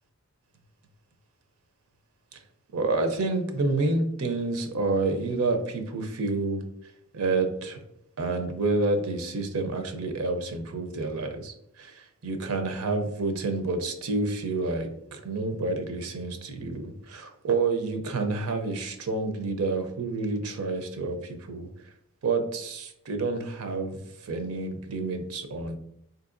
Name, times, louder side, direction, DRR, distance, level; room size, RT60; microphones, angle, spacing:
voice 1, 2.7-6.6 7.1-7.8 8.2-21.7 22.2-25.8, right 3 dB, 80° right, 7 dB, 0.6 m, -29 dB
3.8 x 2.8 x 2.5 m, 0.74 s
head